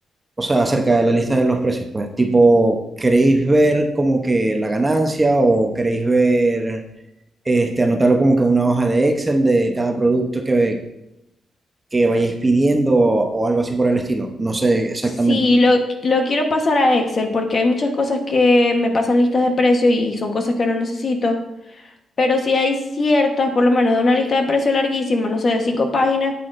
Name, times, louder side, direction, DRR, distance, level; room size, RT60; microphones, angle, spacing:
voice 1, 0.4-6.8 7.5-10.8 11.9-15.4, right 2 dB, 20° right, 4 dB, 0.8 m, -18 dB
voice 2, 15.3-21.4 22.2-26.3, left 2 dB, 40° left, 4 dB, 1.1 m, -18 dB
10.0 x 8.5 x 2.5 m, 0.86 s
cardioid pair, 135°, 0 cm